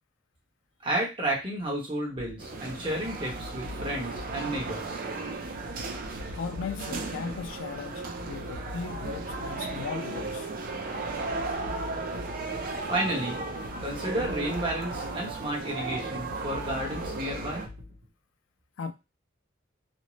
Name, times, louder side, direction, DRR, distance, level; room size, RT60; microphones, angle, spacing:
voice 1, 0.8-5.0 12.9-13.4 13.8-17.6, right 1 dB, 25° right, 0.9 m, -32 dB
sound 1, 2.2-18.1, left 2 dB, 85° right, 0.8 m, -44 dB
sound 2, 2.4-17.7, right 3 dB, 45° right, 0.4 m, -35 dB
voice 2, 6.3-10.5 18.8-18.9, left 5 dB, 90° left, 0.3 m, -37 dB
2.5 x 2.0 x 3.0 m
head